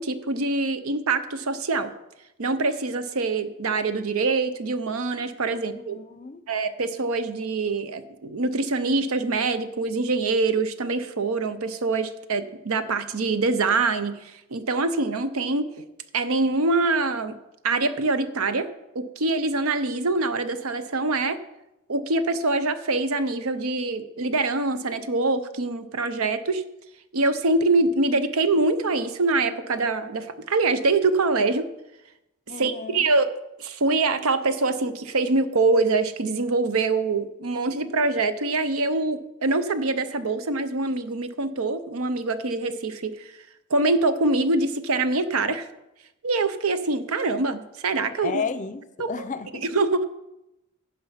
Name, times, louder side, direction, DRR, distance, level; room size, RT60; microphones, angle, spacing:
voice 1, 0.0-1.9 2.4-6.0 6.5-15.7 16.1-17.4 17.6-18.7 18.9-21.4 21.9-26.6 27.1-31.7 32.6-33.3 33.6-43.3 43.7-45.7 46.2-48.4 49.0-49.1 49.5-50.1, right 3 dB, 75° right, 12 dB, 0.8 m, -24 dB
voice 2, 5.6-6.4 32.5-33.0 48.2-49.6, left 5 dB, 35° left, 14 dB, 0.6 m, -33 dB
15.5 x 5.5 x 5.7 m, 0.93 s
head